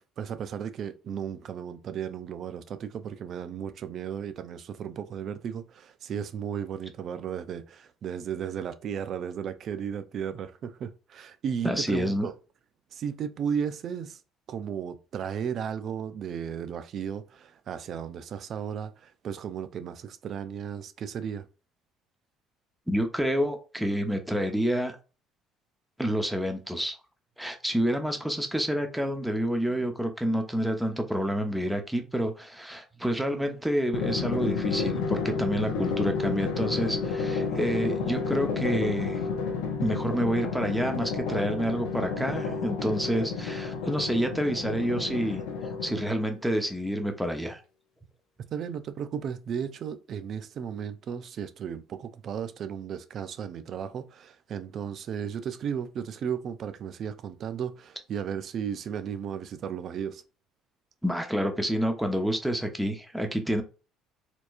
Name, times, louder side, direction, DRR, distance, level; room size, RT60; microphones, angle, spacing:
voice 1, 0.0-12.3 12.9-14.2 14.5-21.5 48.5-60.2, right 8 dB, 55° right, 0.5 m, -35 dB
voice 2, 11.6-12.3 22.9-25.0 26.0-27.0 27.4-39.2 39.8-47.6 61.0-63.6, equal, 5° right, 0.9 m, -28 dB
Drum, 33.9-46.3, left 5 dB, 80° left, 0.8 m, -31 dB
4.3 x 2.9 x 2.6 m
supercardioid pair, 70°, 0 cm